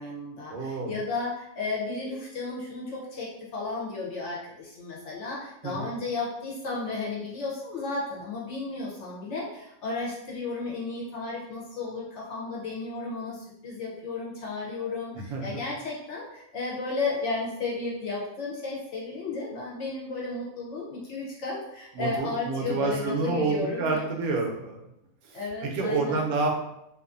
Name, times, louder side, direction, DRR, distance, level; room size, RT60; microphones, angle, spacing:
voice 1, 0.0-24.0 25.3-26.3, left 3 dB, 65° left, -3 dB, 0.8 m, -33 dB
voice 2, 0.5-1.0 5.6-5.9 15.1-15.5 21.9-24.8 25.2-26.5, right 3 dB, 75° right, 1 dB, 1.0 m, -28 dB
2.5 x 2.4 x 2.4 m, 0.83 s
omnidirectional pair, 1.6 m